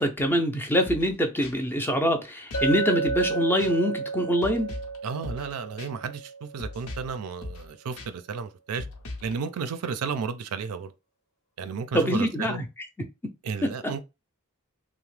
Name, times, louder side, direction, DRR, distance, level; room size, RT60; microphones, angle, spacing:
voice 1, 0.0-4.7 11.9-12.7 13.6-13.9, equal, 10° left, 0.4 m, -24 dB
sound 1, 0.8-1.1 1.4-1.5 2.5-2.8 3.0-3.3 3.6-3.7 4.4-5.0 5.2-5.5 5.8-5.9 6.6-7.1 7.4-7.7 8.0-8.1 8.8-9.3, left 2 dB, 70° left, 0.7 m, -38 dB
Chink clink, 2.5-7.0, right 4 dB, 90° left, 1.0 m, -32 dB
voice 2, 5.0-8.9 9.2-10.9 11.6-12.6 13.4-14.0, right 5 dB, 85° right, 0.4 m, -33 dB
2.8 x 2.0 x 3.1 m
head